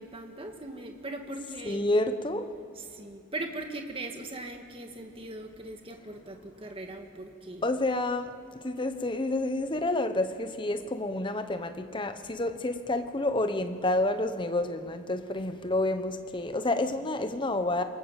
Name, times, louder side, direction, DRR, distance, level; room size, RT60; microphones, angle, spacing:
voice 1, 0.0-1.9 2.8-7.7, right 2 dB, 25° right, 3 dB, 1.8 m, -40 dB
voice 2, 1.6-2.5 7.6-17.8, left 2 dB, 25° left, 8 dB, 1.0 m, -29 dB
27.0 x 18.5 x 7.5 m, 2.8 s
head